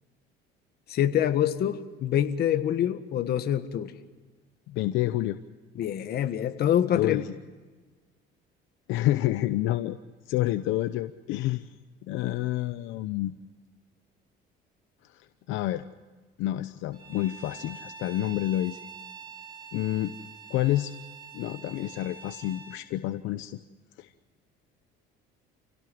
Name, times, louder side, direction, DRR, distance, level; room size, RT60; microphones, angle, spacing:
voice 1, 0.9-3.9 5.8-7.2, left 10 dB, 55° left, 9 dB, 1.7 m, -26 dB
voice 2, 4.7-5.4 6.9-7.3 8.9-10.0 10.3-11.7 12.1-13.3 15.5-15.8 16.4-18.8 19.7-20.1 20.5-20.9 21.3-23.5 24.0-24.1, left 15 dB, 75° left, 10 dB, 0.9 m, -28 dB
Bowed string instrument, 16.9-22.8, right 5 dB, 20° right, 3.3 m, -45 dB
28.5 x 17.5 x 6.2 m, 1.4 s
cardioid pair, 135°, 20 cm